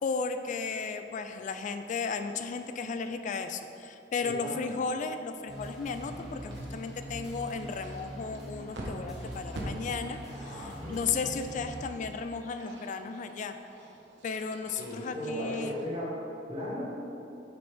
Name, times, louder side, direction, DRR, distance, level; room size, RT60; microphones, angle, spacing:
voice 1, 0.0-13.6 14.2-15.8, left 5 dB, 45° left, 8 dB, 0.3 m, -34 dB
voice 2, 4.2-4.6 10.4-11.0 14.8-16.1 16.5-16.8, equal, 35° right, -11 dB, 1.6 m, -36 dB
sound 1, 5.5-11.8, equal, 5° right, 1.5 m, -42 dB
sound 2, 6.3-15.9, right 1 dB, 80° right, 1.1 m, -47 dB
8.6 x 5.4 x 3.4 m, 2.8 s
head